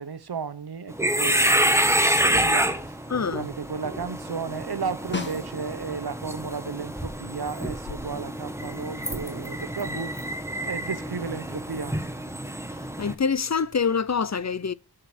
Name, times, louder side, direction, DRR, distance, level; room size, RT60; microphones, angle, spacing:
voice 1, 0.0-3.0 3.3-10.1 10.6-12.0, right 5 dB, 70° right, 0.8 m, -34 dB
sound 1, 0.9-13.2, right 1 dB, 5° right, 1.1 m, -27 dB
voice 2, 3.1-3.5 13.0-14.7, left 6 dB, 45° left, 0.5 m, -25 dB
Snare drum, 5.1-6.0 10.5-10.6, left 2 dB, 25° left, 1.7 m, -34 dB
13.0 x 4.9 x 4.2 m
wide cardioid pair, 55°, 40 cm